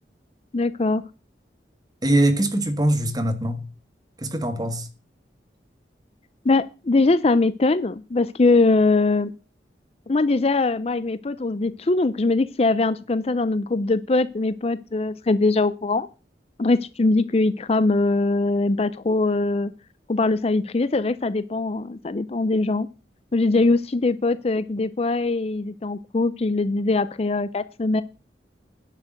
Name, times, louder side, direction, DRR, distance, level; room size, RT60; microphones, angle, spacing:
voice 1, 0.5-1.0 6.4-9.3 10.1-16.1 16.6-19.7 20.1-22.9 23.3-28.0, left 3 dB, 35° left, 0.5 m, -22 dB
voice 2, 2.0-3.7 4.2-4.9, right 1 dB, 20° right, 1.6 m, -22 dB
10.5 x 6.7 x 7.9 m
head